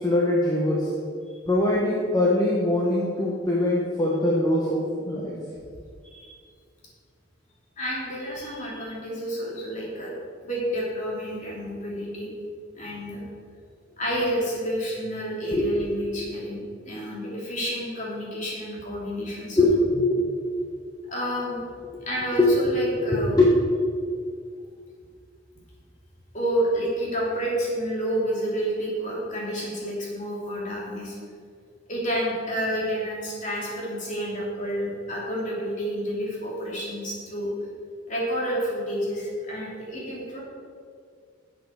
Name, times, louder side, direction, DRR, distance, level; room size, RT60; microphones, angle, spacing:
voice 1, 0.0-0.9 1.5-5.3 15.5-15.6 19.5-20.2 20.6-20.7 22.4-22.8 23.1-23.5, left 1 dB, 20° left, -4 dB, 1.1 m, -22 dB
voice 2, 6.0-6.3 7.8-10.1 10.4-12.3 12.7-13.2 14.0-19.7 21.1-21.6 22.1-23.4 26.3-31.2 31.9-37.5 38.1-40.4, equal, 40° left, -5 dB, 3.2 m, -29 dB
12.0 x 7.8 x 4.7 m, 2.2 s
head